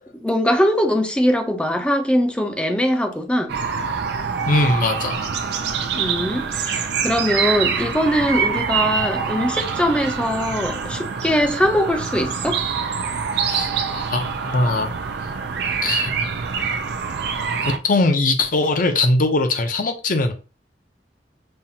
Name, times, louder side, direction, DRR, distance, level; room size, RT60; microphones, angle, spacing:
voice 1, 0.1-3.5 5.9-12.6, equal, 5° left, 0.5 m, -21 dB
sound 1, 3.5-17.8, right 6 dB, 65° right, 0.4 m, -25 dB
voice 2, 4.5-5.2 13.3-14.9 15.8-16.1 17.6-20.3, left 2 dB, 50° left, 0.7 m, -21 dB
5.4 x 2.4 x 2.8 m
head